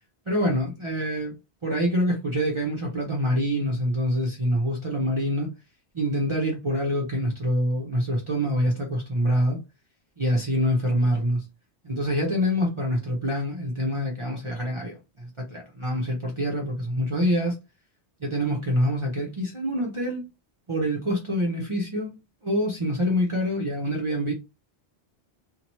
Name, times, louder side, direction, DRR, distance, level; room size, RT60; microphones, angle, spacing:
voice 1, 0.3-1.3 1.6-5.5 5.9-9.6 10.2-11.4 11.8-17.6 18.2-20.2 20.7-22.1 22.4-24.3, equal, 30° right, 0.7 m, -26 dB
2.8 x 2.2 x 2.9 m
omnidirectional pair, 1.1 m